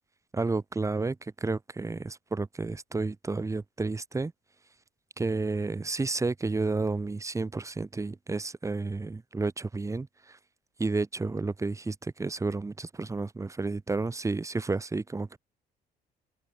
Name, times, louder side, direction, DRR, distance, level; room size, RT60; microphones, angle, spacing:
voice 1, 0.3-4.3 5.2-10.4 10.8-15.4, right 3 dB, 20° right, 3.1 m, -31 dB
open air
cardioid pair, 110°, 17 cm